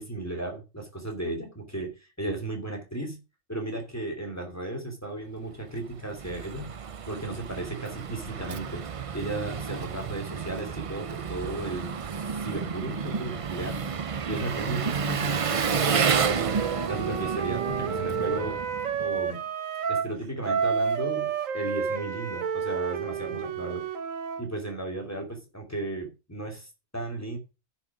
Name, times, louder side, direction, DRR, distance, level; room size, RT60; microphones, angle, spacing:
voice 1, 0.0-3.2 3.5-6.7 7.1-8.8 9.1-12.0 12.3-13.9 14.3-16.6 16.9-18.6 19.0-19.4 19.9-23.9 24.4-27.4, right 1 dB, 10° left, 2 dB, 2.8 m, -35 dB
Engine, 5.7-19.2, right 6 dB, 55° right, 0.4 m, -31 dB
Wind instrument woodwind instrument, 16.4-20.1 20.4-24.5, right 7 dB, 90° right, 1.5 m, -30 dB
9.9 x 5.9 x 5.9 m, 0.29 s
omnidirectional pair, 1.3 m